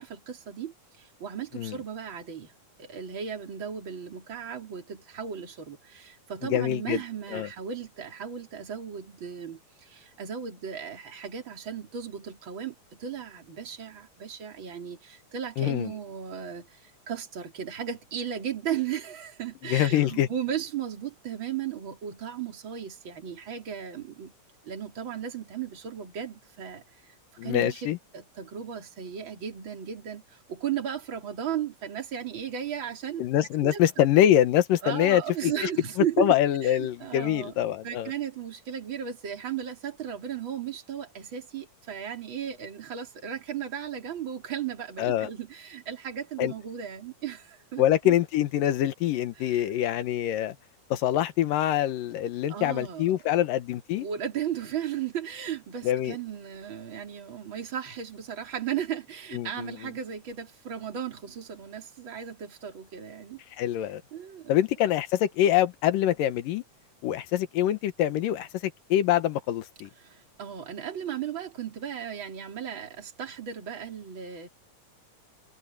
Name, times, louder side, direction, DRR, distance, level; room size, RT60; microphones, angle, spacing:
voice 1, 0.0-2.5 2.8-24.3 24.6-27.1 27.4-27.9 28.1-33.8 34.8-36.3 36.6-37.5 37.8-48.2 49.4-49.7 52.5-53.2 53.9-63.4 64.1-64.5 70.0-74.5, right 9 dB, 35° right, 3.7 m, -36 dB
voice 2, 6.4-7.0 7.3-7.5 15.6-15.9 19.6-20.3 27.4-28.0 33.2-35.7 36.2-38.1 45.0-45.3 46.4-46.5 47.8-50.6 50.9-54.1 55.8-56.2 59.3-59.7 63.6-64.0 64.5-66.6 67.0-69.9, left 12 dB, 90° left, 2.9 m, -25 dB
omnidirectional pair, 3.8 m